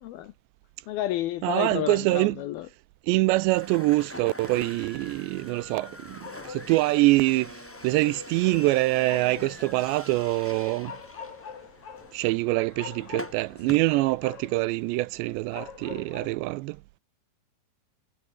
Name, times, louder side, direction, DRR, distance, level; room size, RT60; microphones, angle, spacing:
voice 1, 0.0-0.3 0.9-2.7, left 13 dB, 75° left, 2.3 m, -31 dB
voice 2, 1.4-2.4 3.1-7.6 7.8-10.9 12.1-16.8, right 20 dB, 80° right, 2.7 m, -25 dB
sound 1, 3.5-13.8, left 1 dB, 5° left, 2.1 m, -44 dB
sound 2, 4.7-16.4, left 6 dB, 45° left, 3.9 m, -46 dB
omnidirectional pair, 5.3 m